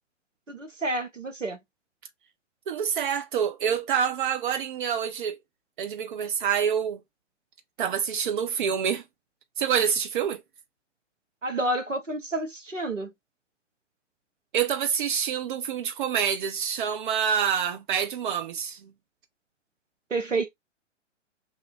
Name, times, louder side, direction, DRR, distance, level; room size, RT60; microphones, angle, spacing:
voice 1, 0.5-1.6 11.4-13.1 20.1-20.5, right 2 dB, 85° right, 1.0 m, -29 dB
voice 2, 2.7-5.4 5.8-7.0 7.8-9.0 9.6-10.4 14.5-18.9, right 8 dB, 45° right, 0.7 m, -27 dB
2.8 x 2.5 x 3.3 m
figure-of-eight pair, 115°, 37 cm